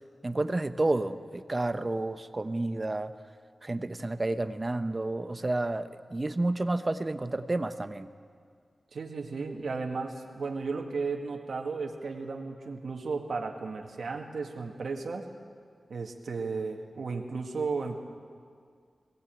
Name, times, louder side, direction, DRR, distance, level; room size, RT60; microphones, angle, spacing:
voice 1, 0.2-3.1 3.6-8.1, right 2 dB, 35° right, 10 dB, 1.0 m, -30 dB
voice 2, 8.9-15.3 15.9-18.0, right 4 dB, 80° right, 2 dB, 2.0 m, -34 dB
21.5 x 18.0 x 9.0 m, 2.1 s
wide cardioid pair, 65°, 0 cm